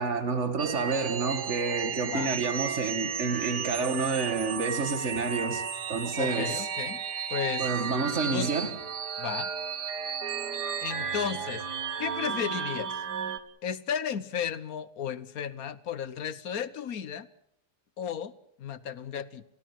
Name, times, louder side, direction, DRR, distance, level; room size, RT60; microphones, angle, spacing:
voice 1, 0.0-5.6 5.9-6.7 7.6-8.7, right 4 dB, 45° right, 2.5 m, -29 dB
sound 1, 0.6-13.4, right 7 dB, 85° right, 2.1 m, -33 dB
voice 2, 2.1-2.4 6.1-7.0 7.3-7.7 8.3-8.5 9.2-9.5 10.8-11.6 12.0-13.0 13.6-17.3 18.0-18.3 18.6-19.4, left 8 dB, 65° left, 1.4 m, -34 dB
29.5 x 16.0 x 7.5 m
omnidirectional pair, 1.7 m